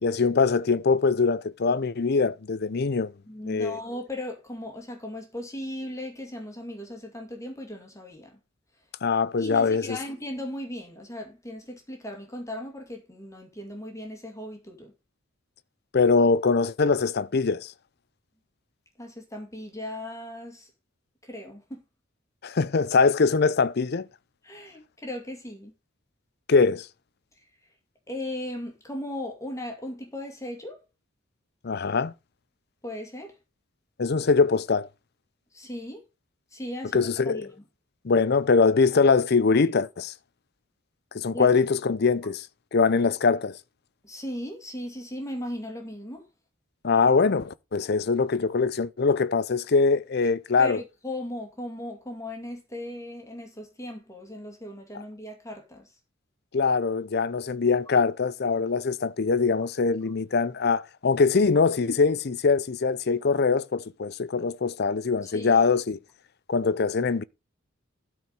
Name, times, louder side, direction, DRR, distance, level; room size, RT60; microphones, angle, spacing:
voice 1, 0.0-3.1 3.5-3.8 9.0-10.0 15.9-17.7 22.4-24.1 26.5-26.9 31.6-32.1 34.0-34.9 36.9-37.5 38.0-40.1 41.1-42.5 42.7-43.6 46.8-50.8 56.5-66.0 66.5-67.2, left 4 dB, 50° left, 0.5 m, -23 dB
voice 2, 3.3-8.4 9.4-14.9 19.0-20.7 21.2-21.8 24.4-25.7 27.4-27.5 28.1-30.8 32.8-33.3 35.5-36.0 36.5-37.5 41.3-41.5 44.0-46.2 50.6-55.9 65.2-65.7, left 1 dB, 15° left, 2.3 m, -37 dB
12.5 x 4.7 x 5.4 m
head